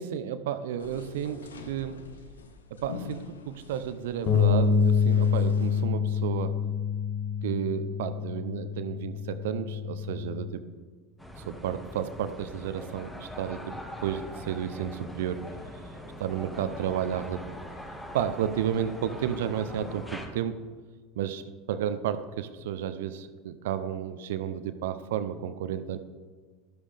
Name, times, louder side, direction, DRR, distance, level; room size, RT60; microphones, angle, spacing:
voice 1, 0.0-2.0 2.7-6.6 7.4-10.6 11.4-15.4 16.2-17.5 18.1-20.5 21.2-26.0, right 9 dB, 65° right, 12 dB, 0.7 m, -32 dB
sound 1, 0.8-5.9, left 5 dB, 80° left, 0.9 m, -45 dB
Bass guitar, 4.3-10.5, left 6 dB, 40° left, 1.4 m, -26 dB
sound 2, 11.2-20.3, left 1 dB, 10° left, 2.0 m, -42 dB
12.5 x 12.5 x 3.5 m, 1.4 s
figure-of-eight pair, 75°, 0 cm